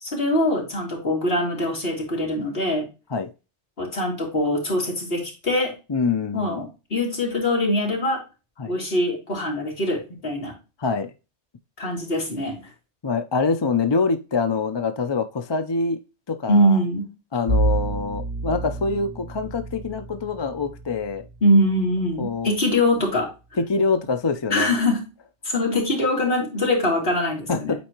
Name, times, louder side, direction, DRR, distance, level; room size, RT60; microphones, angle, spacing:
voice 1, 0.0-2.9 3.8-5.7 6.3-8.2 8.7-10.5 11.8-12.6 16.5-17.1 21.4-23.3 24.5-25.0 25.4-27.7, left 1 dB, 55° left, -1 dB, 2.7 m, -23 dB
voice 2, 5.9-6.6 8.6-8.7 10.8-11.1 13.0-16.0 16.3-16.8 17.3-21.2 22.2-22.5 23.7-24.7 27.5-27.7, left 4 dB, 35° left, 8 dB, 0.4 m, -25 dB
Bowed string instrument, 17.5-22.6, right 2 dB, 85° right, 1.6 m, -29 dB
8.5 x 4.4 x 2.9 m, 0.30 s
omnidirectional pair, 1.2 m